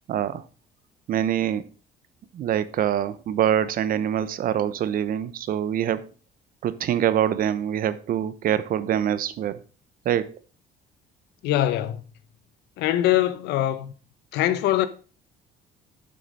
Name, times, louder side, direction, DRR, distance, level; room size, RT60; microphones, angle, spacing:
voice 1, 0.1-0.4 1.1-1.7 2.3-6.1 6.6-9.6 10.0-10.4, right 10 dB, 55° right, 0.8 m, -25 dB
voice 2, 11.4-12.0 12.8-13.9 14.3-14.9, left 13 dB, 85° left, 0.9 m, -22 dB
7.1 x 6.5 x 5.3 m
cardioid pair, 110°, 17 cm